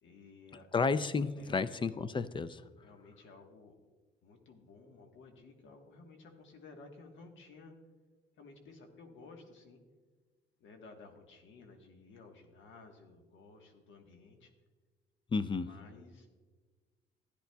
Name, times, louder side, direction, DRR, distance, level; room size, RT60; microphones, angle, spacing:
voice 1, 0.0-0.8 1.4-1.7 2.8-3.7 4.2-7.8 8.3-9.8 10.6-14.5 15.4-16.3, left 3 dB, 70° left, 4 dB, 1.3 m, -55 dB
voice 2, 0.7-2.6 15.3-15.7, left 4 dB, 25° left, 15 dB, 0.4 m, -32 dB
13.5 x 9.9 x 2.3 m, 1.4 s
cardioid pair, 90°, 20 cm